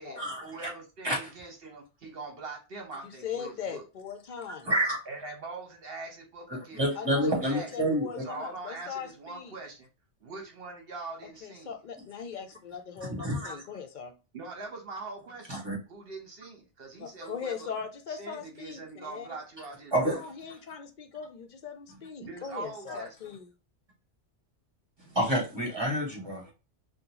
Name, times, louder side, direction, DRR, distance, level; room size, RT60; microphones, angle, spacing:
voice 1, 0.0-3.8 4.7-4.8 5.1-7.0 7.2-7.7 8.2-9.9 10.2-11.7 14.3-15.5 15.9-17.7 18.1-20.2 22.2-23.1, right 3 dB, 55° right, 1.0 m, -42 dB
voice 2, 3.0-4.7 7.0-9.6 11.4-14.1 17.0-19.3 20.1-23.5, left 7 dB, 55° left, 0.6 m, -40 dB
voice 3, 4.6-5.0 6.5-8.2 13.0-13.6 15.5-15.8 19.9-20.2 25.1-26.5, right 1 dB, 25° right, 1.2 m, -28 dB
3.7 x 2.2 x 2.9 m
omnidirectional pair, 1.2 m